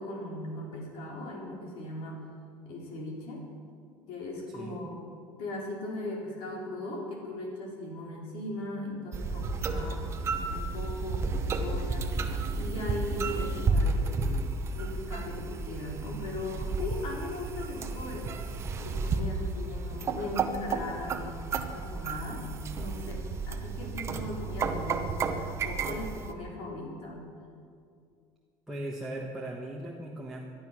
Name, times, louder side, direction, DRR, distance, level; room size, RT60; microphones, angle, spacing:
voice 1, 0.0-2.2 2.6-3.4 4.0-5.1 5.4-12.1 12.5-18.4 18.8-22.5 22.8-27.3, left 1 dB, 55° left, -1 dB, 4.5 m, -39 dB
sound 1, 9.1-26.3, right 3 dB, 25° right, 0.9 m, -32 dB
voice 2, 28.7-30.4, right 1 dB, 5° right, -4 dB, 1.3 m, -38 dB
19.5 x 12.0 x 6.2 m, 2.3 s
cardioid pair, 170°, 11 cm